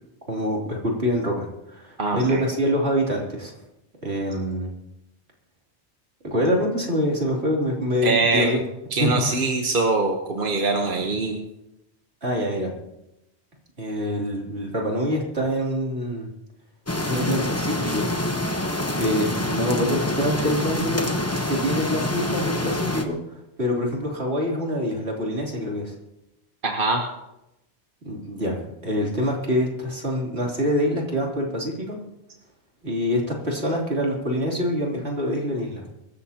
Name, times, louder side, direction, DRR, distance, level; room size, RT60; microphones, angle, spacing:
voice 1, 0.3-3.5 4.0-4.7 6.2-8.6 9.0-9.1 12.2-12.7 13.8-16.3 16.9-18.1 19.0-21.1 21.5-25.9 28.0-28.6 28.8-32.0 32.8-35.8, equal, 70° right, -2 dB, 3.5 m, -25 dB
voice 2, 2.0-2.4 8.0-8.5 8.9-11.4 26.6-27.0, right 3 dB, 50° right, 2 dB, 1.3 m, -23 dB
sound 1, 16.9-23.0, left 1 dB, 15° left, 1.0 m, -26 dB
23.5 x 13.5 x 2.9 m, 0.91 s
omnidirectional pair, 1.1 m